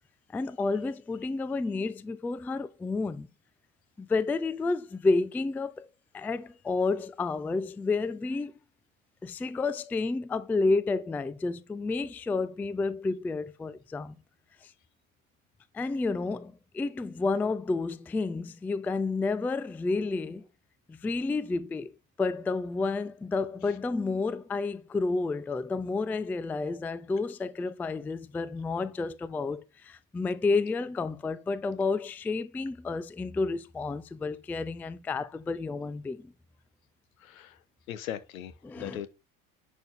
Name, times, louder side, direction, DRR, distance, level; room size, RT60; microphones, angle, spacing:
voice 1, 0.3-3.3 4.0-5.9 6.1-8.5 9.2-14.1 15.7-20.4 20.9-21.9 22.2-36.2 38.6-39.0, left 3 dB, 5° left, 0.3 m, -30 dB
voice 2, 37.2-37.6 37.9-39.1, left 10 dB, 70° left, 1.2 m, -39 dB
10.5 x 5.1 x 4.1 m
figure-of-eight pair, 70°, 42 cm